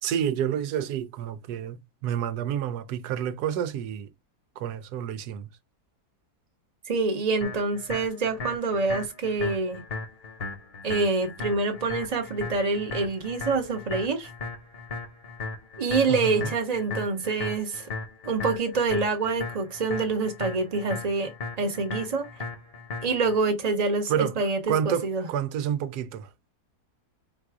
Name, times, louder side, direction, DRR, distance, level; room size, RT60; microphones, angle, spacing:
voice 1, 0.0-4.1 4.6-5.5 16.1-16.5 24.1-26.3, right 9 dB, 80° right, 1.1 m, -29 dB
voice 2, 6.9-9.8 10.8-14.3 15.8-17.9 18.2-21.3 21.6-22.2 23.0-24.6 24.8-25.3, right 3 dB, 30° right, 0.9 m, -26 dB
sound 1, 7.4-23.4, left 3 dB, 40° left, 1.1 m, -37 dB
4.1 x 2.4 x 4.7 m
omnidirectional pair, 1.7 m